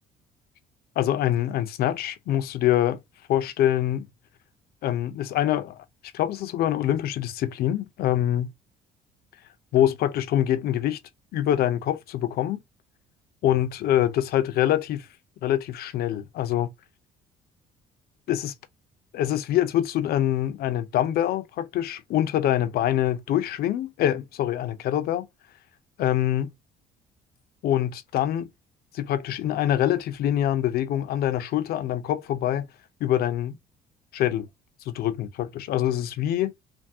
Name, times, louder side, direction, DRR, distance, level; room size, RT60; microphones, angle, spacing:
voice 1, 1.0-3.0 3.3-4.1 4.8-5.8 6.1-8.5 9.7-11.0 11.3-12.6 13.4-15.1 15.4-16.7 18.3-18.5 19.1-25.3 26.0-26.5 27.6-28.5 28.9-32.7 33.0-33.6 34.1-34.5 34.9-36.5, left 12 dB, 65° left, 0.5 m, -25 dB
3.5 x 2.2 x 2.6 m
cardioid pair, 110°, 17 cm